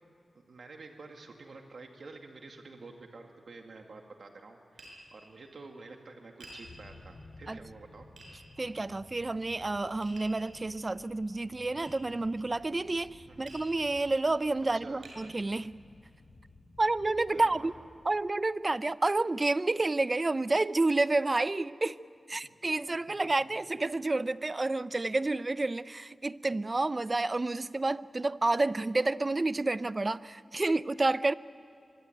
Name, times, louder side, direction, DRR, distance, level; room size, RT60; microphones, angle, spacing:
voice 1, 0.3-8.1 13.3-13.5 14.7-15.0 17.3-17.7 22.4-22.6, right 3 dB, 65° right, 2.2 m, -49 dB
Tap, 4.8-5.0 6.4-6.6 8.2-8.3 10.0-10.4 11.8-11.9 13.5-13.7 14.4-14.5 15.0-15.2, right 1 dB, 85° right, 7.1 m, -49 dB
sound 1, 6.6-17.9, left 2 dB, 60° left, 4.9 m, -55 dB
voice 2, 8.6-15.7 16.8-17.7 18.1-22.0 22.3-31.3, right 2 dB, 30° right, 0.5 m, -29 dB
24.5 x 24.0 x 9.3 m
wide cardioid pair, 110°, 0 cm